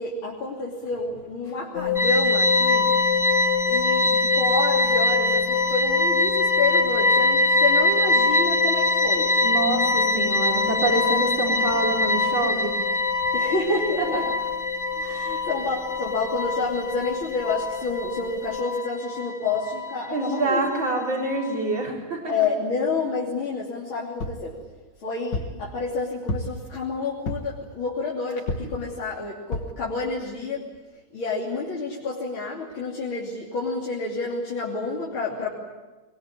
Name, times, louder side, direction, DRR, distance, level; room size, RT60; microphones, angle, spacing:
voice 1, 0.0-2.9 3.7-9.3 13.3-14.3 14.9-20.6 22.3-24.6 25.0-30.7 31.1-35.5, left 3 dB, 85° left, -4 dB, 3.9 m, -29 dB
sound 1, 1.7-18.6, left 9 dB, 30° left, 2.6 m, -29 dB
sound 2, 2.0-21.8, left 1 dB, 10° left, 0.9 m, -24 dB
voice 2, 9.4-12.7 14.1-14.2 15.0-15.4 20.1-22.3 28.6-28.7, right 2 dB, 70° right, 0 dB, 5.0 m, -26 dB
sound 3, 24.2-24.5 25.3-25.6 26.3-26.7 27.3-27.6 28.5-28.8 29.5-29.8 30.4-30.5 30.7-30.8, left 2 dB, 60° left, 2.6 m, -30 dB
22.5 x 22.0 x 9.8 m, 1.2 s
omnidirectional pair, 2.2 m